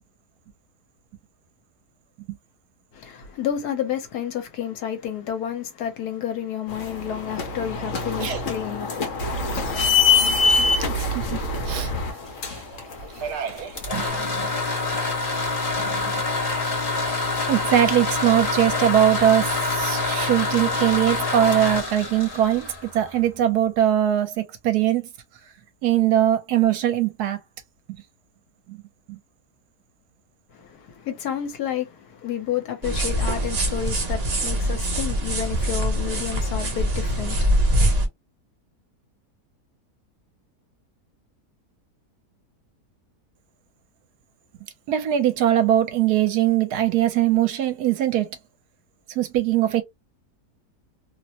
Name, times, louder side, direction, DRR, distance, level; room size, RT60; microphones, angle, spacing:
voice 1, 2.9-9.4 30.5-37.7, left 9 dB, 70° left, 1.2 m, -30 dB
sound 1, 6.7-14.1, left 4 dB, 55° left, 1.0 m, -24 dB
voice 2, 10.9-11.9 12.5-12.6 13.1-14.5 15.8-16.0 17.5-25.1 25.8-27.4 28.7-28.8 29.1-29.2 44.9-48.3 49.1-49.8, right 11 dB, 75° right, 1.1 m, -22 dB
sound 2, 13.6-23.4, left 3 dB, 25° left, 0.9 m, -26 dB
sound 3, 32.8-38.1, equal, 55° right, 0.4 m, -23 dB
2.9 x 2.0 x 2.7 m
omnidirectional pair, 1.8 m